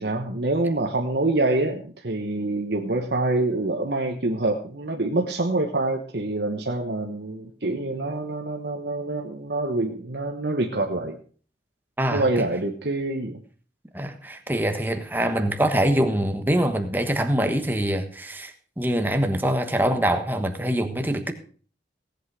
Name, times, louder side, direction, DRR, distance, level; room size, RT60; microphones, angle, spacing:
voice 1, 0.0-11.2 12.1-13.4, right 2 dB, 65° right, 2 dB, 1.2 m, -26 dB
voice 2, 12.0-12.4 13.9-21.3, right 1 dB, 10° right, 6 dB, 1.3 m, -24 dB
17.5 x 8.1 x 4.8 m, 0.42 s
head